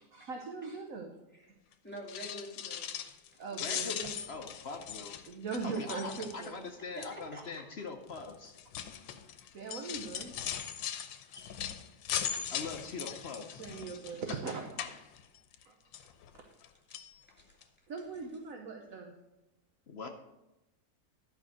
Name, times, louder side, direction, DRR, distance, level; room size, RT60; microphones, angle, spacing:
voice 1, 0.1-1.1 3.4-4.1 5.3-6.6 9.5-10.3 12.3-12.7 13.6-15.1 15.6-15.7 17.9-19.1, right 4 dB, 55° right, 2 dB, 1.2 m, -40 dB
voice 2, 1.8-3.0 3.3-3.4 6.9-7.6 10.8-11.8 16.3-16.4 17.3-17.6, equal, 5° left, -3 dB, 2.1 m, -48 dB
sound 1, 2.0-3.3 3.5-6.7 7.0-7.4 8.1-15.6 15.9-16.7 16.9-17.1 17.6-17.7 18.0-18.1, left 9 dB, 85° left, 1.4 m, -40 dB
voice 3, 3.6-4.0 4.3-5.2 5.6-8.5 9.9-10.0 12.5-13.6 19.9-20.1, left 4 dB, 55° left, 4 dB, 0.7 m, -42 dB
11.0 x 5.3 x 6.3 m, 0.96 s
omnidirectional pair, 2.0 m